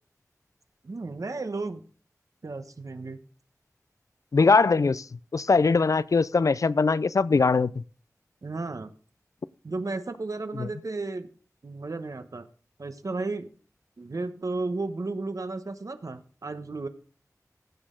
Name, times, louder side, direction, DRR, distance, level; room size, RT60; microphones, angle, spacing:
voice 1, 0.8-1.8 2.4-3.2 8.4-8.9 9.6-11.3 11.6-12.5 12.8-13.5 14.0-16.9, right 3 dB, 65° right, 1.0 m, -33 dB
voice 2, 4.3-5.0 5.3-7.8 10.6-10.7, left 4 dB, 60° left, 0.4 m, -21 dB
15.5 x 6.4 x 3.8 m
wide cardioid pair, 50°, 6 cm